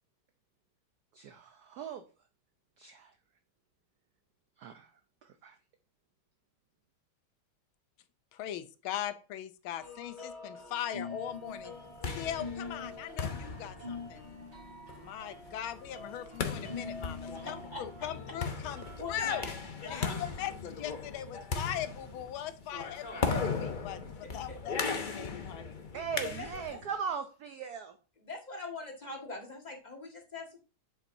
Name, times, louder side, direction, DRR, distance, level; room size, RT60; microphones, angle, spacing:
voice 1, 1.1-2.1 2.8-3.2 4.6-5.6 25.9-28.0, right 6 dB, 70° right, 8 dB, 0.9 m, -39 dB
voice 2, 8.3-11.7 12.1-14.3 15.0-19.4 19.9-20.1 20.4-25.8, left 11 dB, 75° left, 11 dB, 1.5 m, -40 dB
sound 1, 9.8-19.0, left 3 dB, 40° right, 3.7 m, -45 dB
sound 2, 11.7-26.9, left 4 dB, 60° left, 0.5 m, -38 dB
voice 3, 17.4-17.8 19.0-19.6 19.8-20.6 22.7-22.9 24.0-24.6 26.2-26.6 28.3-30.6, left 3 dB, 20° left, 0 dB, 1.6 m, -43 dB
8.2 x 7.2 x 2.7 m, 0.32 s
omnidirectional pair, 2.3 m